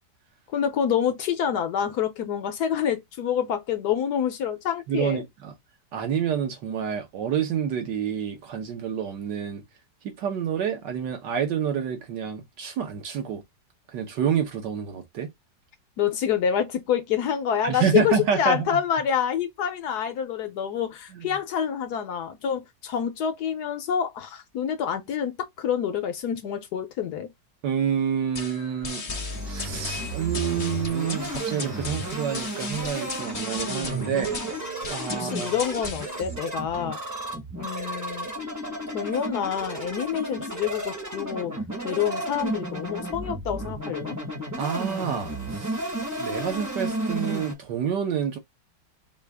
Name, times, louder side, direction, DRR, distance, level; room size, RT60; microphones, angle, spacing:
voice 1, 0.5-5.2 16.0-27.3 35.1-37.0 37.6-38.3 38.9-41.5 41.8-44.2, left 8 dB, 70° left, 1.1 m, -27 dB
voice 2, 4.9-5.5 5.9-9.6 10.0-13.4 13.9-15.3 17.6-18.8 21.1-21.3 27.6-29.0 29.5-34.4 34.9-35.6 44.6-45.8 46.2-48.4, right 8 dB, 70° right, 1.6 m, -28 dB
sound 1, 28.3-36.3, left 4 dB, 50° left, 0.4 m, -37 dB
sound 2, 29.1-47.5, right 1 dB, 15° right, 0.8 m, -33 dB
5.0 x 2.5 x 3.4 m
omnidirectional pair, 2.0 m